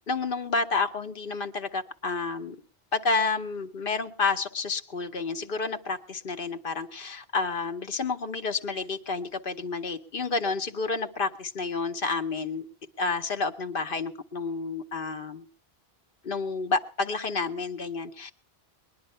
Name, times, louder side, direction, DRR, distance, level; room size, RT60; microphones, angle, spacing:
voice 1, 0.1-2.6 2.9-12.6 13.0-15.5 16.2-18.3, left 4 dB, 60° left, 8 dB, 1.1 m, -30 dB
21.0 x 10.5 x 5.5 m, 0.39 s
omnidirectional pair, 1.1 m